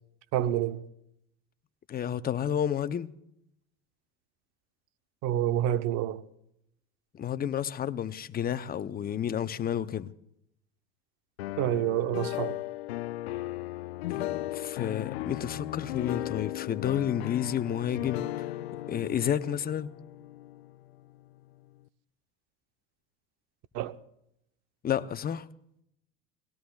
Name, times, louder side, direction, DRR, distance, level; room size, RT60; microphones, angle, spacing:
voice 1, 0.3-0.8 5.2-6.2 11.6-12.6 23.7-24.0, right 12 dB, 60° right, 0.9 m, -28 dB
voice 2, 1.9-3.1 7.1-10.1 14.1-18.5 18.9-19.9 24.8-25.5, left 9 dB, 30° left, 0.8 m, -31 dB
sound 1, 11.4-21.3, left 16 dB, 90° left, 0.5 m, -36 dB
30.0 x 19.0 x 2.4 m
hypercardioid pair, 90°, 30 cm